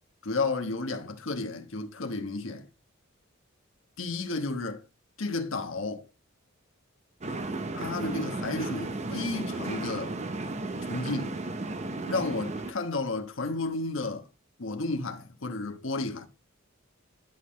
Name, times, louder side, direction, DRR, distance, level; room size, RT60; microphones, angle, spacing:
voice 1, 0.2-2.7 4.0-4.8 5.2-6.1 7.7-10.1 10.8-11.4 12.0-14.3 14.6-16.3, left 3 dB, 65° left, 1.2 m, -32 dB
sound 1, 7.2-12.7, right 2 dB, 30° right, 0.7 m, -34 dB
11.0 x 5.6 x 3.1 m
head